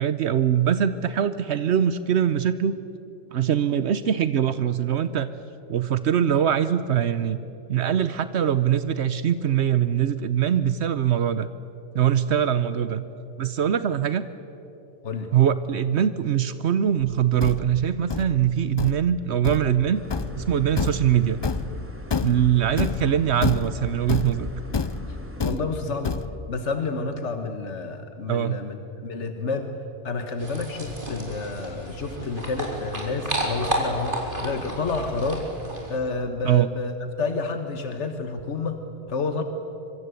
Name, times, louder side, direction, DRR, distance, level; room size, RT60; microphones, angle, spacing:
voice 1, 0.0-2.8 3.3-5.3 5.7-7.4 7.7-11.5 11.9-13.0 13.4-14.3 15.3-20.0 20.4-21.4 22.2-24.5 28.3-28.6 36.4-36.7, right 9 dB, 75° right, 13 dB, 1.0 m, -22 dB
Thump thud, 17.0-26.6, left 5 dB, 35° left, 0.4 m, -30 dB
sound 1, 19.9-25.4, right 1 dB, 10° right, 1.7 m, -38 dB
voice 2, 25.1-26.2 26.5-29.7 30.0-35.5 35.9-39.4, left 3 dB, 90° left, 7 dB, 1.7 m, -30 dB
sound 2, 30.4-36.0, right 1 dB, 50° right, 4.3 m, -31 dB
25.0 x 24.5 x 8.3 m, 2.9 s
omnidirectional pair, 1.2 m